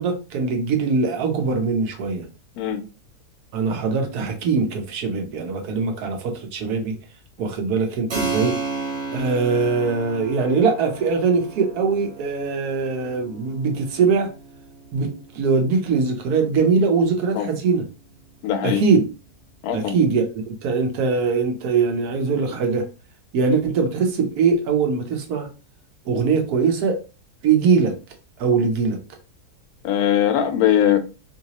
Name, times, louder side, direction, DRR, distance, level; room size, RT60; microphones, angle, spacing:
voice 1, 0.0-2.2 3.5-6.9 7.4-8.5 9.1-14.3 14.9-17.8 18.6-19.0 19.7-20.2 20.6-22.8 23.3-25.5 26.1-27.0 27.4-27.9 28.4-29.0, right 5 dB, 75° right, 1.3 m, -21 dB
Keyboard (musical), 8.1-18.3, right 3 dB, 60° right, 1.6 m, -34 dB
voice 2, 18.4-18.8 19.6-20.0 29.8-31.0, left 10 dB, 75° left, 1.1 m, -20 dB
3.2 x 2.9 x 2.8 m
omnidirectional pair, 1.6 m